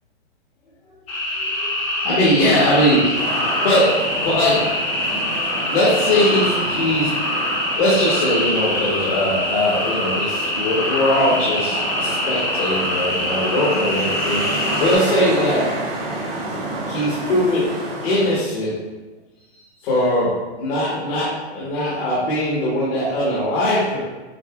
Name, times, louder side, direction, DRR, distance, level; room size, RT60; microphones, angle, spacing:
sound 1, 1.1-15.0, left 1 dB, 20° left, 0.9 m, -24 dB
voice 1, 1.4-3.2 3.5-4.7 5.7-7.2 7.8-15.7 16.9-17.7 18.0-18.8 19.8-24.0, left 1 dB, 55° left, -8 dB, 1.3 m, -20 dB
sound 2, 3.1-18.4, right 2 dB, 35° right, 1.0 m, -30 dB
6.5 x 2.6 x 2.4 m, 1.2 s
hypercardioid pair, 150°, 34 cm